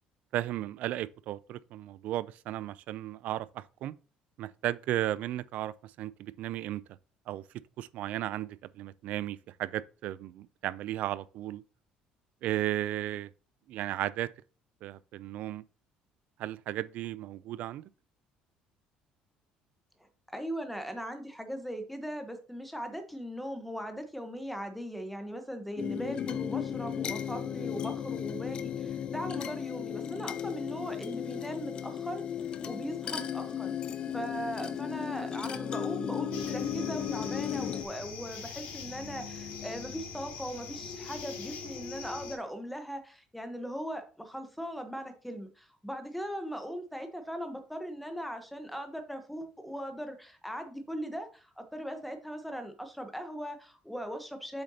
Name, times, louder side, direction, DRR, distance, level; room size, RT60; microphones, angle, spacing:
voice 1, 0.3-3.9 4.4-6.8 7.3-7.4 7.8-11.6 12.4-13.3 13.7-14.3 14.8-15.6 16.4-17.8, right 14 dB, 60° right, 0.4 m, -35 dB
voice 2, 20.3-32.2 32.6-33.7 34.1-54.6, equal, ahead, 1.1 m, -39 dB
sound 1, 25.8-37.8, left 8 dB, 35° left, 0.6 m, -35 dB
sound 2, 36.3-42.3, left 5 dB, 70° left, 2.7 m, -42 dB
8.0 x 6.4 x 2.8 m
cardioid pair, 150°, 3 cm